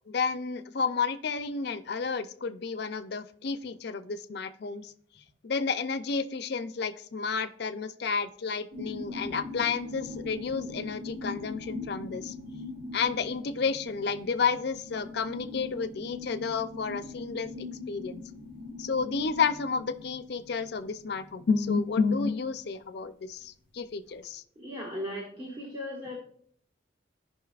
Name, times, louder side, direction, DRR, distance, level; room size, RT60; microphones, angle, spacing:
voice 1, 0.1-4.9 5.4-12.3 12.9-17.5 17.9-18.2 18.8-24.4, left 5 dB, 60° left, 11 dB, 0.5 m, -31 dB
sound 1, 8.7-21.8 22.1-22.2, left 3 dB, 80° right, 2.5 m, -41 dB
voice 2, 24.5-26.1, left 1 dB, 30° right, -2 dB, 1.6 m, -37 dB
15.0 x 5.4 x 2.4 m, 0.62 s
head